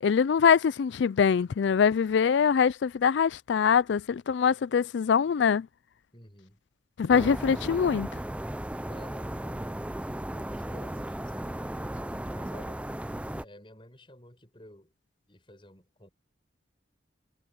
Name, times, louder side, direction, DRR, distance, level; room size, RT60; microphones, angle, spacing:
voice 1, 0.0-5.7 7.0-8.1, left 6 dB, 70° left, 0.4 m, -23 dB
voice 2, 6.1-6.6 8.9-9.9 10.2-12.0 12.3-12.8 13.4-14.9 15.3-16.1, left 1 dB, 25° left, 7.5 m, -52 dB
sound 1, 7.1-13.4, right 1 dB, 5° right, 0.5 m, -36 dB
head